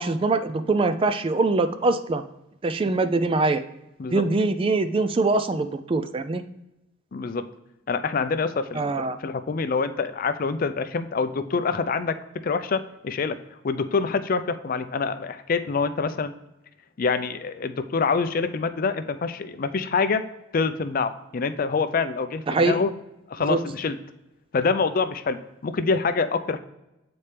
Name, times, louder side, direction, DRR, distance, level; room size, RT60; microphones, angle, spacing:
voice 1, 0.0-2.2 2.6-3.6 4.1-6.4 8.8-9.2 22.5-22.8 23.4-23.6, right 3 dB, 25° right, 10 dB, 0.3 m, -23 dB
voice 2, 7.1-7.4 7.9-12.2 12.4-13.4 13.6-16.3 17.0-20.2 20.5-22.9 23.3-24.0 24.5-26.6, left 4 dB, 45° left, 11 dB, 0.4 m, -26 dB
8.2 x 4.3 x 3.3 m, 0.92 s
head